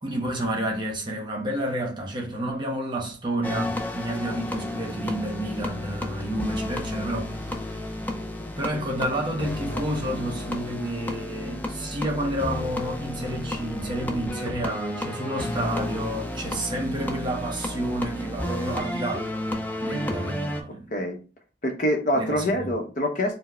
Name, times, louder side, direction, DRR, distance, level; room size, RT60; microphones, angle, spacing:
voice 1, 0.0-8.0 8.6-19.3 19.8-20.9 22.1-22.7, right 1 dB, 25° right, 1.0 m, -30 dB
sound 1, 3.4-20.6, left 1 dB, 10° left, 0.5 m, -32 dB
voice 2, 21.6-23.4, equal, 45° left, 0.9 m, -25 dB
4.5 x 2.1 x 4.2 m
head